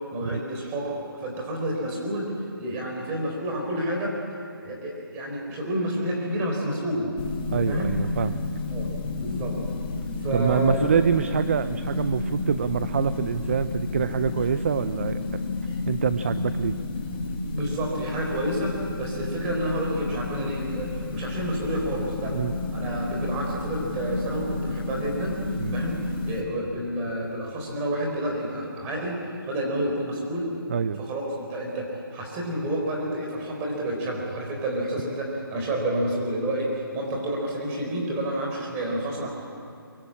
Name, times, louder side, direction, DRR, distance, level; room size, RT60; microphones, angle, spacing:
voice 1, 0.1-0.9 1.2-2.3 2.6-7.1 7.6-8.0 8.7-8.9 9.2-9.6 10.2-10.9 15.7-15.8 17.5-22.4 22.7-25.4 25.7-26.0 26.3-30.5 31.0-39.3, right 1 dB, 15° right, 0 dB, 4.2 m, -29 dB
sound 1, 7.2-26.4, left 3 dB, 25° left, 2.8 m, -31 dB
voice 2, 7.5-8.4 10.3-15.2 15.9-16.8 22.3-22.5 25.6-25.8 30.7-31.0, right 7 dB, 35° right, 13 dB, 0.6 m, -25 dB
23.5 x 22.5 x 8.7 m, 2.6 s
hypercardioid pair, 165°, 13 cm